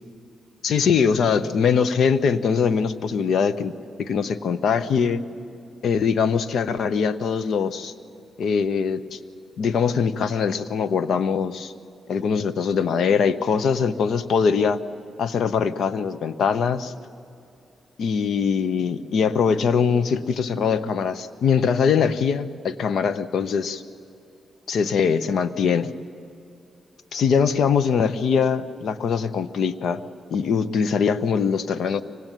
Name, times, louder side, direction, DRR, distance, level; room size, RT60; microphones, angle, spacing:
voice 1, 0.6-5.2 5.8-7.9 8.4-9.2 9.6-11.7 12.1-14.8 15.2-16.9 18.0-23.8 24.7-25.9 27.1-30.0 30.3-32.0, left 6 dB, 75° left, 13 dB, 0.9 m, -22 dB
24.5 x 19.0 x 9.2 m, 2.5 s
cardioid pair, 85°, 0 cm